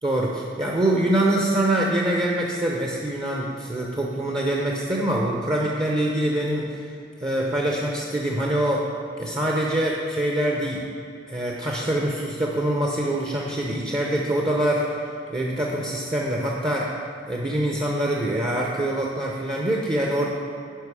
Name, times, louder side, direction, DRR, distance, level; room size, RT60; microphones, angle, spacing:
voice 1, 0.0-6.8 7.2-8.9 9.2-10.8 11.3-15.0 15.3-16.9 17.3-20.3, right 1 dB, 25° right, -2 dB, 0.7 m, -24 dB
10.5 x 5.3 x 4.8 m, 2.5 s
head